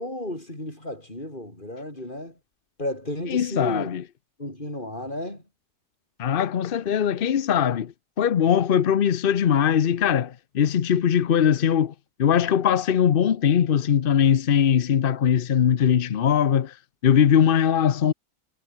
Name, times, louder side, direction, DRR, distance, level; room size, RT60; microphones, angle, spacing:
voice 1, 0.0-2.4 2.8-4.0 4.4-5.4, left 1 dB, 30° left, 7.5 m, -33 dB
voice 2, 3.3-4.0 6.2-11.9 12.2-16.8 17.0-18.1, left 8 dB, 50° left, 0.6 m, -21 dB
omnidirectional pair, 1.8 m